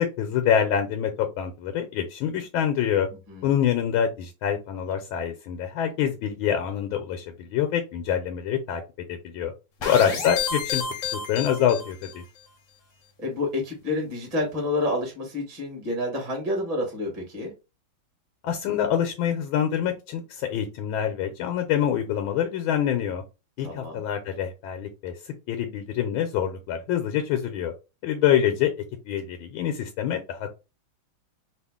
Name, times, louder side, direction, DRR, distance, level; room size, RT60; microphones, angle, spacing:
voice 1, 0.0-3.1 3.4-8.8 9.1-9.5 9.8-10.8 11.1-12.2 18.4-23.2 23.6-27.7 28.0-28.7 29.0-30.5, left 9 dB, 90° left, 5 dB, 1.4 m, -26 dB
voice 2, 3.3-3.6 9.9-10.2 13.2-17.5 23.6-24.0, left 2 dB, 25° right, -1 dB, 1.1 m, -29 dB
sound 1, 9.8-12.2, left 6 dB, 60° left, 0.8 m, -31 dB
3.2 x 2.4 x 3.5 m, 0.28 s
omnidirectional pair, 2.2 m